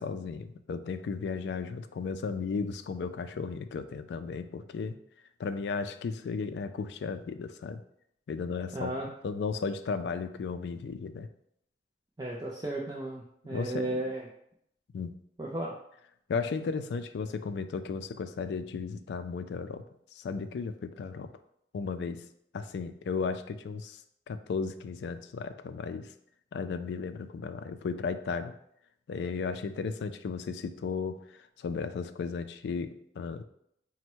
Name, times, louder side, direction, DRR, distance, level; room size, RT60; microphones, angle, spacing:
voice 1, 0.0-5.0 5.4-7.8 8.3-11.3 13.5-14.0 14.9-15.2 16.3-19.8 20.1-21.3 21.7-22.2 22.5-24.0 24.3-26.1 26.5-28.5 29.1-33.4, left 5 dB, 75° left, 10 dB, 0.3 m, -35 dB
voice 2, 8.7-9.1 12.2-14.2 15.4-15.7, right 1 dB, 20° right, -3 dB, 0.4 m, -34 dB
4.2 x 2.1 x 4.4 m, 0.73 s
head